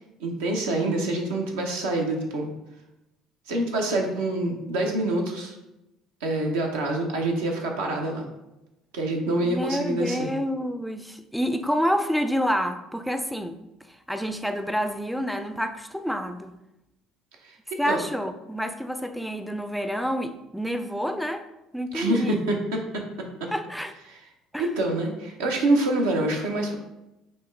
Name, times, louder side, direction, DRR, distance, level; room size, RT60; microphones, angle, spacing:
voice 1, 0.2-2.5 3.5-5.6 6.2-8.2 8.9-10.3 17.4-17.6 17.9-18.0 21.9-23.0 23.4-23.5 24.1-24.2 24.6-26.8, right 2 dB, 85° right, 1 dB, 0.7 m, -26 dB
voice 2, 9.4-13.6 14.1-16.5 17.8-21.5 21.7-22.4 23.5-23.9 24.5-24.7, equal, ahead, 8 dB, 0.3 m, -28 dB
5.4 x 2.2 x 3.3 m, 0.91 s
hypercardioid pair, 70°, 0 cm